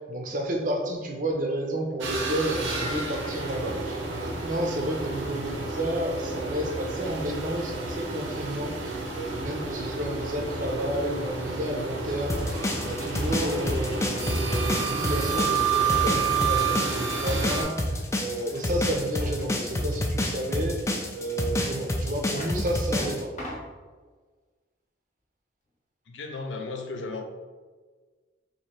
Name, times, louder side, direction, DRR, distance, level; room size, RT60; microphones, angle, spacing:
voice 1, 0.1-20.8 21.1-23.3, right 1 dB, 45° right, 2 dB, 0.5 m, -31 dB
sound 1, 2.0-17.6, right 5 dB, 90° right, 0.7 m, -30 dB
sound 2, 12.3-23.2, left 1 dB, 15° left, 0.3 m, -28 dB
sound 3, 18.5-18.6 19.2-19.5 21.4-21.5 22.1-22.6 23.0-23.7, left 1 dB, 40° left, 0.9 m, -39 dB
voice 2, 26.1-27.2, left 3 dB, 80° left, 5 dB, 0.5 m, -35 dB
3.0 x 2.7 x 4.3 m, 1.4 s
head